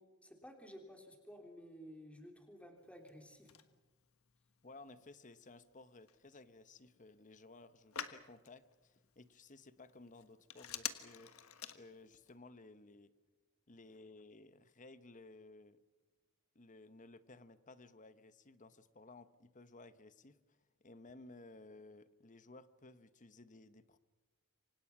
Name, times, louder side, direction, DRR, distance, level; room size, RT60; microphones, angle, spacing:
voice 1, 0.0-3.5, equal, 5° left, 3 dB, 3.5 m, -54 dB
Telephone, 2.8-12.4, left 9 dB, 75° left, 1.4 m, -51 dB
voice 2, 4.6-11.3 11.7-13.1 13.7-15.8 16.5-20.4 20.8-24.0, left 2 dB, 35° left, 13 dB, 0.9 m, -57 dB
28.5 x 25.0 x 6.0 m, 1.2 s
head